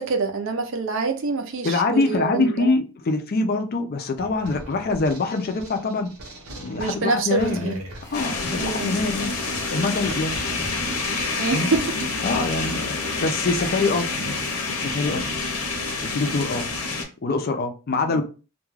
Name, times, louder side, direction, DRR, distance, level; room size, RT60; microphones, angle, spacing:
voice 1, 0.0-2.7 6.8-7.8 8.6-9.0 11.4-11.8 18.0-18.2, right 4 dB, 60° right, 0.5 m, -26 dB
voice 2, 1.6-6.1 6.6-7.8 8.1-9.3 9.7-10.4 11.5-11.7 12.2-14.1 14.7-15.2 16.0-16.7 17.2-18.2, left 3 dB, 45° left, 0.4 m, -24 dB
sound 1, 4.2-12.5, right 1 dB, 80° right, 0.8 m, -41 dB
sound 2, 8.0-16.4, left 1 dB, 15° left, 0.7 m, -45 dB
sound 3, 8.1-17.0, left 3 dB, 80° left, 0.8 m, -28 dB
2.3 x 2.2 x 3.1 m
head